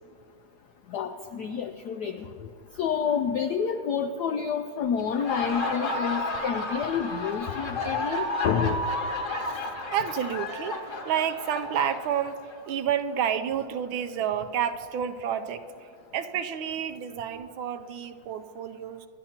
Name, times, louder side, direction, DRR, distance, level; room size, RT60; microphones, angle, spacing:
voice 1, 0.9-2.5 2.8-8.8, left 7 dB, 80° left, 7 dB, 0.9 m, -29 dB
Laughter, 5.0-12.6, left 2 dB, 40° left, 1.7 m, -32 dB
voice 2, 9.9-10.8 11.0-19.1, right 9 dB, 80° right, 9 dB, 1.4 m, -30 dB
26.0 x 12.0 x 2.9 m, 2.4 s
omnidirectional pair, 2.4 m